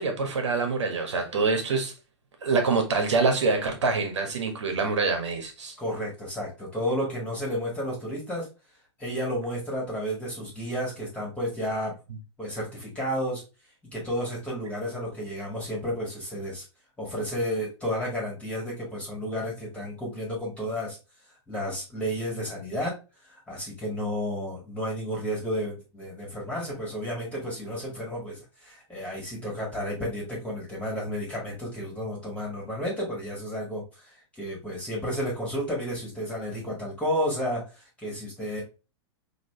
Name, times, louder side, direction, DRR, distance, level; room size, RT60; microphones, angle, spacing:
voice 1, 0.0-1.9 2.4-5.7, right 4 dB, 85° right, 1.4 m, -25 dB
voice 2, 5.8-8.5 9.0-11.9 12.4-13.4 13.9-16.6 17.0-21.0 21.5-23.0 23.2-38.6, equal, 10° left, 1.7 m, -32 dB
4.1 x 3.0 x 3.1 m
hypercardioid pair, 125°, 15 cm